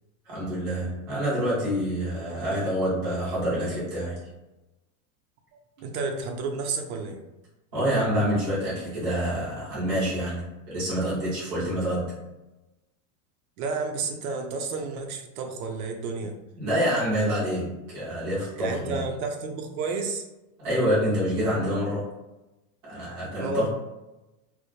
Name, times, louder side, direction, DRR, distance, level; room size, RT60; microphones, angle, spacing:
voice 1, 0.3-4.2 7.7-12.1 16.6-19.0 20.6-22.1 22.8-23.7, equal, 20° right, -9 dB, 0.3 m, -27 dB
voice 2, 5.5-7.2 13.6-16.3 18.6-20.2 23.4-23.7, right 4 dB, 80° right, 3 dB, 0.6 m, -31 dB
2.1 x 2.1 x 2.7 m, 1.0 s
supercardioid pair, 175°, 43 cm